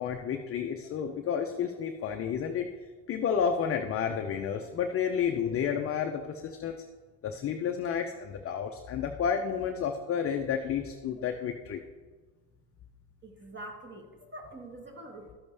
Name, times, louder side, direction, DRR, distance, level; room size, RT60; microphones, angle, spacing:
voice 1, 0.0-2.7 3.1-6.9 7.2-11.9 15.0-15.2, left 7 dB, 30° left, 5 dB, 0.5 m, -31 dB
voice 2, 13.2-15.4, right 1 dB, 25° right, 3 dB, 1.5 m, -45 dB
12.5 x 7.0 x 3.3 m, 1.4 s
cardioid pair, 120°, 47 cm